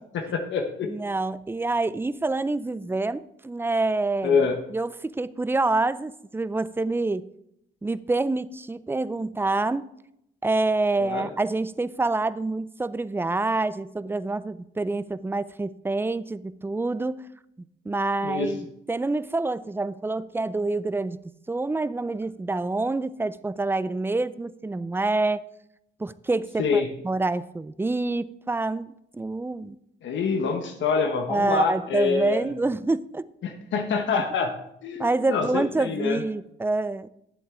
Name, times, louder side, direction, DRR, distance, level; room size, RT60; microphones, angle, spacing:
voice 1, 0.1-0.9 4.2-4.6 11.0-11.3 18.2-18.5 26.6-26.9 30.0-32.5 33.4-34.5 34.8-36.2, left 5 dB, 70° left, 5 dB, 1.1 m, -25 dB
voice 2, 0.8-7.3 7.8-9.9 10.4-17.2 17.9-21.2 21.5-25.4 26.0-29.8 31.3-33.2 35.0-37.1, right 2 dB, 10° right, 15 dB, 0.4 m, -27 dB
11.5 x 7.9 x 3.7 m, 0.79 s
cardioid pair, 90°, 20 cm